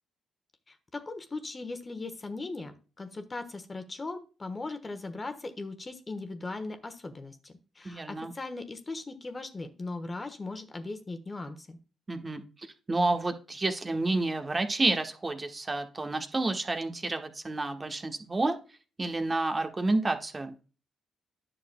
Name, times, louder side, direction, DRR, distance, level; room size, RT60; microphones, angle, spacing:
voice 1, 0.7-11.8, left 3 dB, 30° left, 8 dB, 1.3 m, -39 dB
voice 2, 7.8-8.3 12.1-12.4 12.9-18.6 19.0-20.5, right 2 dB, 30° right, 6 dB, 1.2 m, -29 dB
10.5 x 6.6 x 2.3 m, 0.34 s
hypercardioid pair, 40°, 0 cm